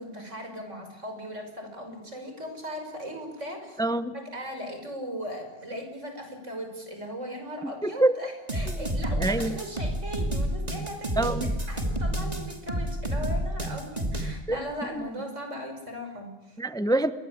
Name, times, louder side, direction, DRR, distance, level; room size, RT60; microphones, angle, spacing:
voice 1, 0.0-3.8 4.1-16.6, equal, 85° right, 5 dB, 6.1 m, -38 dB
voice 2, 3.8-4.1 7.6-8.1 9.2-9.5 11.2-11.5 14.5-14.6 15.0-15.1 16.6-17.1, right 2 dB, 5° left, 11 dB, 0.9 m, -25 dB
sound 1, 8.5-14.3, right 1 dB, 30° right, 2.8 m, -29 dB
28.5 x 22.5 x 8.3 m, 0.99 s
omnidirectional pair, 1.2 m